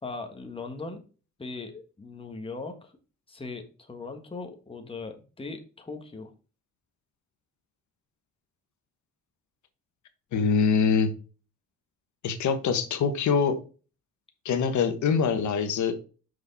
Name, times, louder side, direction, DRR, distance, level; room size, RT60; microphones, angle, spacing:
voice 1, 0.0-1.0 1.4-2.9 3.3-6.3, left 3 dB, 20° left, 4 dB, 1.5 m, -39 dB
voice 2, 10.3-11.1 12.2-13.6 14.4-15.9, left 6 dB, 70° left, 9 dB, 1.3 m, -24 dB
6.2 x 4.8 x 4.2 m, 0.34 s
cardioid pair, 90°, 30 cm